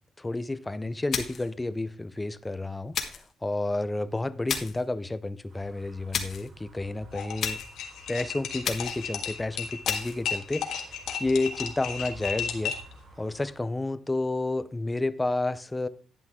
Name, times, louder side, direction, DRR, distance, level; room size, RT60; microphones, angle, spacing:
voice 1, 0.2-7.6 8.1-12.8 13.2-15.9, left 2 dB, 10° left, 0.5 m, -31 dB
sound 1, 1.1-1.5 2.9-3.3 4.5-4.9 6.1-6.5 7.4-7.8 8.6-9.1 9.8-10.2, left 6 dB, 50° left, 1.4 m, -32 dB
sound 2, 5.5-13.5, right 1 dB, 65° right, 5.7 m, -51 dB
sound 3, 7.1-12.9, left 7 dB, 85° left, 1.5 m, -33 dB
11.0 x 8.5 x 3.6 m
cardioid pair, 135°, 0 cm